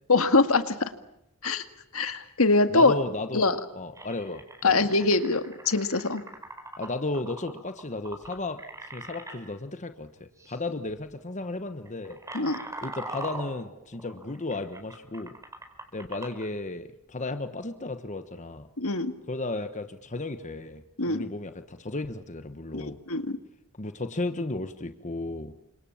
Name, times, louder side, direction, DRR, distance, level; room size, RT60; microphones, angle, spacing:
voice 1, 0.1-0.9 1.4-1.6 1.9-2.9 3.3-3.6 4.6-6.2 12.3-12.6 18.8-19.1 21.0-21.2 22.7-23.4, left 3 dB, 70° left, 9 dB, 2.0 m, -23 dB
voice 2, 2.7-4.9 6.8-8.6 8.9-12.2 12.8-15.3 15.9-18.7 19.3-23.0 23.8-25.5, left 2 dB, 35° left, 8 dB, 1.2 m, -34 dB
sound 1, 3.9-9.4 10.4-10.6 10.9-11.2 11.7-16.5, right 2 dB, 15° right, 4.9 m, -41 dB
30.0 x 26.0 x 7.3 m, 0.77 s
head